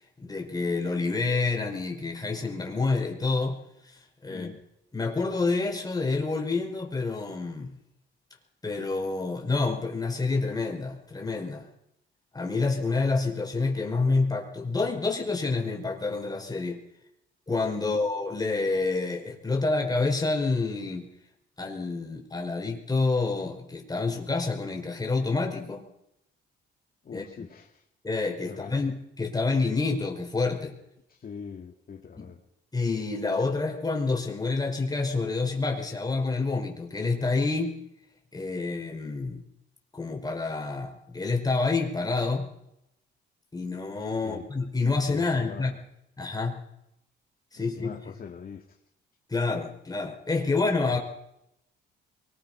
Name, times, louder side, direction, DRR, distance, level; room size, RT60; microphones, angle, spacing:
voice 1, 0.2-3.6 4.2-4.5 4.9-7.8 8.6-11.7 12.3-16.8 17.5-21.1 21.6-25.9 27.1-27.2 28.0-30.7 32.7-37.8 38.3-39.4 39.9-42.5 43.5-45.7 46.2-46.6 47.5-47.9 49.3-51.0, left 3 dB, 20° left, 3 dB, 5.1 m, -28 dB
voice 2, 4.3-4.6 17.8-18.0 27.0-27.9 28.4-28.8 31.1-32.4 44.2-44.5 45.0-45.8 47.5-48.6 50.9-51.0, left 6 dB, 50° left, 2 dB, 2.2 m, -43 dB
23.5 x 19.5 x 5.7 m, 0.80 s
cardioid pair, 90°, 20 cm